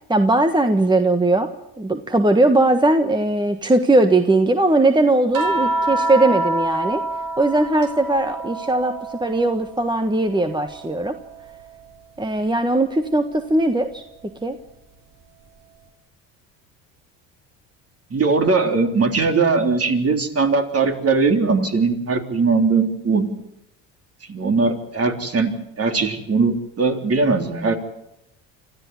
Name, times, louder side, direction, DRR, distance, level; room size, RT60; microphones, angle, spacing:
voice 1, 0.1-1.5 1.8-7.0 7.4-11.2 12.2-14.0 14.4-14.6, right 2 dB, 10° right, 8 dB, 1.5 m, -19 dB
sound 1, 5.3-9.8 10.2-11.8 13.3-13.5, right 2 dB, 55° right, 4.2 m, -27 dB
voice 2, 18.1-23.3 24.3-27.8, right 4 dB, 35° right, 5 dB, 3.7 m, -20 dB
25.0 x 14.5 x 9.6 m, 0.85 s
supercardioid pair, 80°, 40 cm